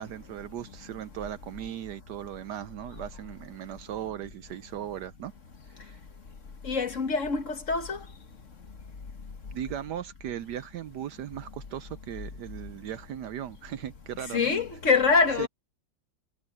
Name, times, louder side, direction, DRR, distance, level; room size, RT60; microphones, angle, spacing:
voice 1, 0.0-5.3 5.8-6.0 9.5-14.5 15.4-15.5, right 11 dB, 70° right, 1.1 m, -38 dB
voice 2, 6.6-8.0 14.3-15.5, left 4 dB, 45° left, 1.5 m, -24 dB
omnidirectional pair, 2.1 m